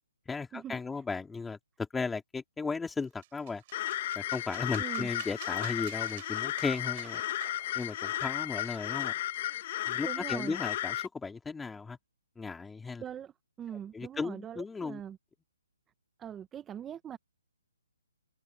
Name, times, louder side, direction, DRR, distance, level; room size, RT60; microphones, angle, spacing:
voice 1, 0.3-3.6 4.1-7.2 7.7-9.1 9.9-12.0 12.4-13.0 13.9-15.0, left 4 dB, 5° left, 3.3 m, -36 dB
sound 1, 3.0-10.5, right 17 dB, 35° right, 6.5 m, -51 dB
sound 2, 3.7-11.1, left 13 dB, 40° left, 1.2 m, -34 dB
voice 2, 4.8-5.1 10.0-10.6 13.0-13.3 13.6-15.2 16.2-17.2, right 9 dB, 15° right, 1.1 m, -42 dB
hypercardioid pair, 150°, 0 cm